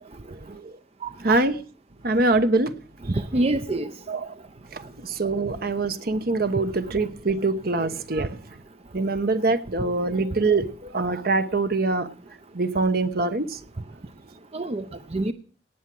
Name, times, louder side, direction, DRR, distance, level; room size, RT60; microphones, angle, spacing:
voice 1, 1.0-1.5 3.1-3.9 14.5-14.8 15.1-15.3, right 2 dB, 35° right, 0.7 m, -26 dB
voice 2, 2.0-2.7 4.1-4.2 4.7-8.4 8.9-12.1 12.5-13.6, right 3 dB, 55° right, 1.1 m, -24 dB
18.5 x 7.4 x 7.6 m
head